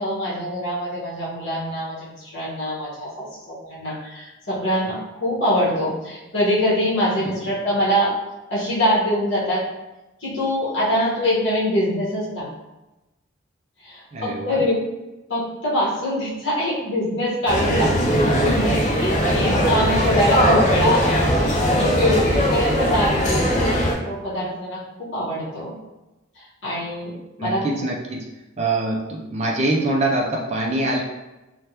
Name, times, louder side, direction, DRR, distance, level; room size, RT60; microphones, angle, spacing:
voice 1, 0.0-8.2 8.5-9.6 10.2-12.5 13.8-14.7 15.3-17.9 18.4-21.1 21.4-25.7 26.3-27.7, equal, 60° left, -8 dB, 1.2 m, -24 dB
voice 2, 14.1-14.6 17.8-17.9 18.2-18.7 27.4-28.2 28.6-31.0, right 2 dB, 30° right, 0 dB, 0.4 m, -24 dB
sound 1, 17.5-23.9, equal, 35° left, 0.5 m, -19 dB
3.4 x 2.2 x 2.8 m, 1.0 s
head